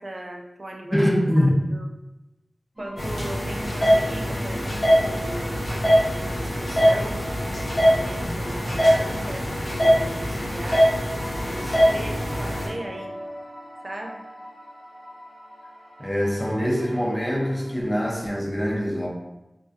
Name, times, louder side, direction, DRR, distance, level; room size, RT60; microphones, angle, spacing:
voice 1, 0.0-1.1 1.4-1.9 2.8-10.9 11.5-13.1 13.8-14.2, right 1 dB, 50° right, 2 dB, 0.4 m, -38 dB
voice 2, 0.9-1.7 16.0-19.1, equal, 15° left, -3 dB, 0.6 m, -23 dB
sound 1, 2.8-17.7, equal, 25° right, 0.7 m, -41 dB
sound 2, 3.0-12.7, equal, 75° left, 0.8 m, -22 dB
2.2 x 2.2 x 2.6 m, 0.98 s
cardioid pair, 45°, 0 cm